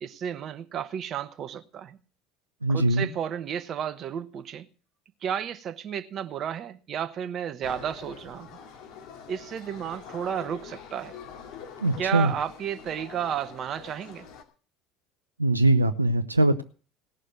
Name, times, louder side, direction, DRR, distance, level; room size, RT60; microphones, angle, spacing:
voice 1, 0.0-2.0 2.7-4.7 5.2-8.5 9.3-11.1 12.0-14.3, right 8 dB, 40° right, 1.1 m, -32 dB
voice 2, 2.6-3.1 11.8-12.3 15.4-16.6, right 2 dB, 90° right, 0.6 m, -22 dB
sound 1, 7.6-14.4, left 6 dB, 55° left, 2.4 m, -45 dB
18.0 x 6.6 x 7.8 m
figure-of-eight pair, 70°, 0 cm